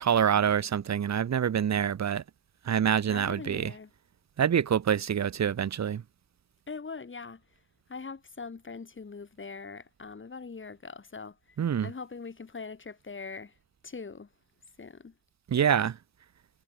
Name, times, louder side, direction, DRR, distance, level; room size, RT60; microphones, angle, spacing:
voice 1, 0.0-2.2 2.7-3.7 4.4-6.0 11.6-11.9 15.5-16.0, right 8 dB, 50° right, 1.0 m, -26 dB
voice 2, 3.1-3.9 6.7-7.4 7.9-11.6 11.8-13.5 13.8-14.3 14.8-15.1, left 4 dB, 35° left, 7.4 m, -42 dB
wide cardioid pair, 135°, 34 cm